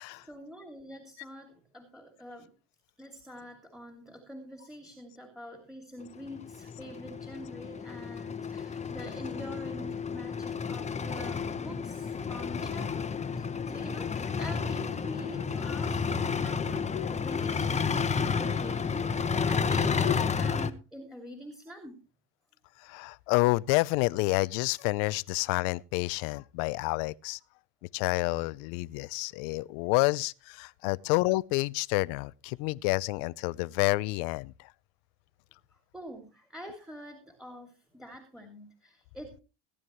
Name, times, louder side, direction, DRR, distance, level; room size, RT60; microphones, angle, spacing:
voice 1, 0.1-2.5 3.0-22.0 35.9-39.4, equal, ahead, 2.7 m, -45 dB
sound 1, 6.1-20.7, left 5 dB, 20° left, 1.1 m, -31 dB
voice 2, 22.8-27.4 27.9-34.7, left 23 dB, 65° left, 0.6 m, -29 dB
18.0 x 10.5 x 3.1 m
supercardioid pair, 95°, 36 cm